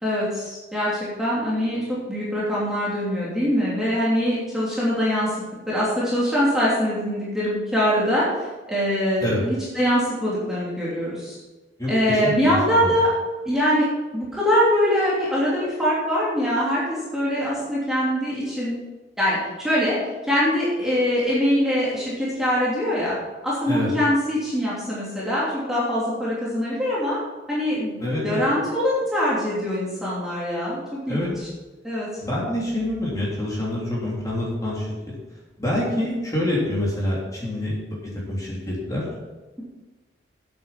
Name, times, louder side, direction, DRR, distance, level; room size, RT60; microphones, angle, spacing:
voice 1, 0.0-5.4 5.6-8.3 8.7-11.4 11.9-13.1 13.4-13.9 14.1-18.7 19.2-20.0 20.2-23.2 23.4-27.2 27.5-28.0 28.2-31.4 31.8-32.1, equal, 5° right, -8 dB, 2.9 m, -23 dB
voice 2, 11.8-12.9 23.7-23.9 28.0-28.4 31.1-31.3 32.2-34.9 35.6-39.0, left 1 dB, 20° left, -5 dB, 3.3 m, -26 dB
9.2 x 8.5 x 5.9 m, 1.2 s
head